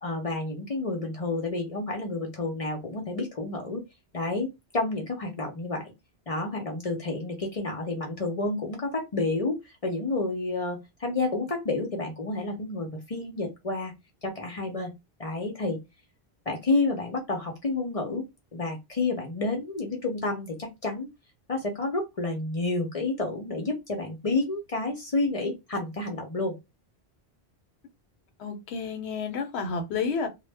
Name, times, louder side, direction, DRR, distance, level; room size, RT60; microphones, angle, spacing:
voice 1, 0.0-3.8 4.1-5.9 6.3-13.9 14.2-14.9 15.2-15.8 16.5-18.3 18.5-21.1 21.5-26.6, left 2 dB, 45° left, 0.6 m, -30 dB
voice 2, 28.4-30.3, left 5 dB, 80° left, 0.9 m, -30 dB
2.1 x 2.0 x 3.3 m
omnidirectional pair, 1.1 m